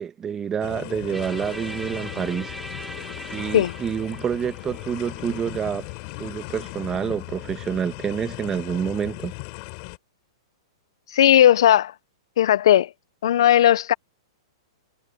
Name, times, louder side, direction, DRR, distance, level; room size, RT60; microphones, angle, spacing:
voice 1, 0.0-2.5 3.3-5.9 6.2-9.3, right 8 dB, 20° right, 1.2 m, -28 dB
sound 1, 0.6-10.0, left 33 dB, 45° left, 6.0 m, -37 dB
sound 2, 1.1-7.0, right 1 dB, 5° right, 1.9 m, -41 dB
voice 2, 11.1-11.9 12.4-12.9 13.2-13.9, left 11 dB, 70° left, 0.5 m, -16 dB
hypercardioid pair, 140°, 3 cm